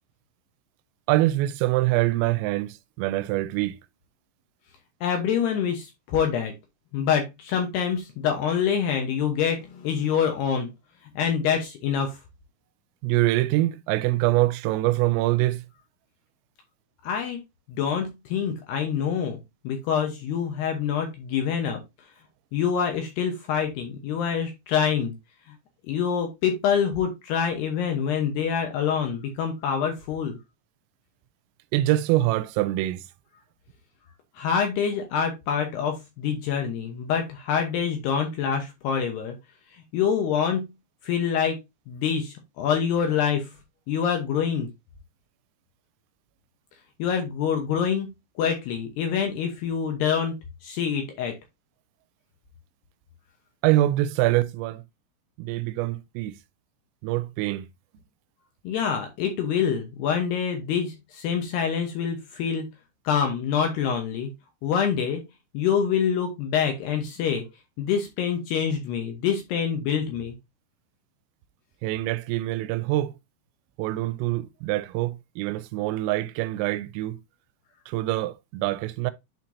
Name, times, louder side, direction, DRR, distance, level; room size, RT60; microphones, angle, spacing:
voice 1, 1.1-3.8 13.0-15.6 31.7-33.0 53.6-54.8 55.4-56.3 57.0-57.7 71.8-73.1 73.8-77.2 77.9-79.1, right 16 dB, 85° right, 3.2 m, -24 dB
voice 2, 5.0-6.5 6.9-10.7 11.1-12.2 17.0-17.4 17.8-19.4 19.6-21.8 22.5-25.1 25.9-30.4 34.4-39.3 39.7-40.7 41.0-41.6 41.9-43.5 43.9-44.7 47.0-48.1 48.4-50.3 50.6-51.4 58.6-62.6 63.0-64.3 64.6-65.2 65.5-67.5 67.8-70.3, left 7 dB, 70° left, 2.6 m, -26 dB
11.0 x 4.5 x 2.7 m
omnidirectional pair, 5.8 m